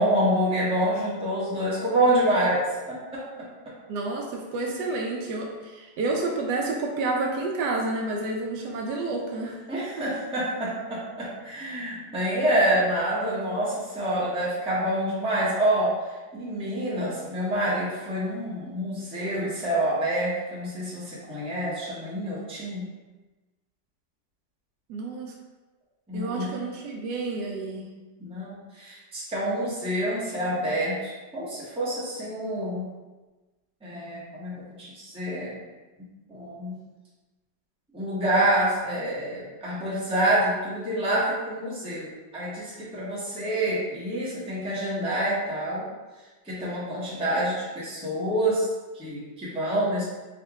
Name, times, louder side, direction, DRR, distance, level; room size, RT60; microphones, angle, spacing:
voice 1, 0.0-3.5 9.7-15.9 16.3-22.9 26.1-26.5 28.2-32.9 33.8-35.5 36.3-36.7 37.9-45.8 46.4-48.6 48.9-50.0, right 1 dB, 5° right, -8 dB, 0.7 m, -27 dB
voice 2, 3.9-9.6 10.0-10.1 24.9-25.3 26.1-27.9, right 3 dB, 75° right, 0 dB, 1.1 m, -30 dB
3.5 x 2.8 x 3.5 m, 1.2 s
omnidirectional pair, 1.9 m